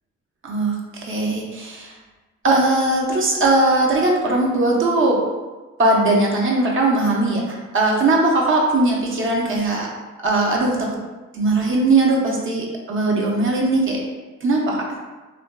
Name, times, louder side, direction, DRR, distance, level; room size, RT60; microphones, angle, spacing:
voice 1, 0.4-1.9 2.4-5.2 5.8-9.9 10.2-10.9 11.3-14.0 14.4-14.8, right 2 dB, 40° right, -2 dB, 0.7 m, -19 dB
3.3 x 2.6 x 2.2 m, 1.2 s
cardioid pair, 90°, 30 cm